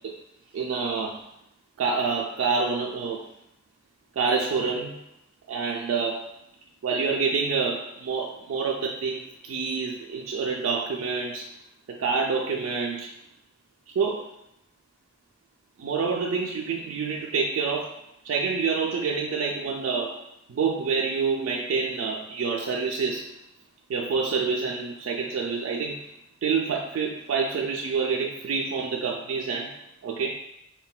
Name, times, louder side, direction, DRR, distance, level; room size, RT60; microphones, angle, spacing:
voice 1, 0.5-1.2 1.8-3.2 4.2-5.0 5.5-6.3 6.8-11.5 11.9-13.1 14.0-14.3 15.8-17.9 18.2-20.2 20.5-23.3 23.9-26.1 26.4-29.7 30.0-30.3, right 5 dB, 85° right, -1 dB, 0.3 m, -27 dB
3.8 x 2.1 x 2.2 m, 0.82 s
head